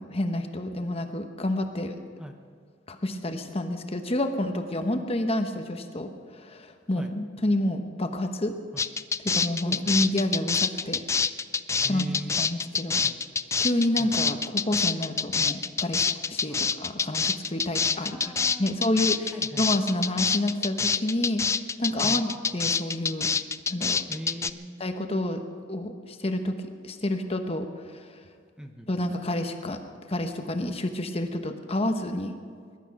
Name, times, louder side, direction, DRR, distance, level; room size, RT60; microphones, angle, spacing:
voice 1, 0.0-1.9 2.9-8.6 9.2-11.0 11.8-12.0 12.4-13.0 13.6-18.3 18.6-21.4 21.8-23.3 23.7-24.0 24.8-25.4 25.7-28.1 28.9-29.8 30.1-32.4, left 1 dB, 30° left, 6 dB, 1.0 m, -29 dB
sound 1, 8.8-24.5, left 5 dB, 15° left, 0.3 m, -26 dB
voice 2, 11.8-12.4 13.0-13.2 14.0-14.3 16.5-16.7 18.0-19.7 22.0-22.3 24.1-24.8 28.6-28.9, equal, 5° right, 4 dB, 0.9 m, -41 dB
20.5 x 12.0 x 5.9 m, 2.1 s
head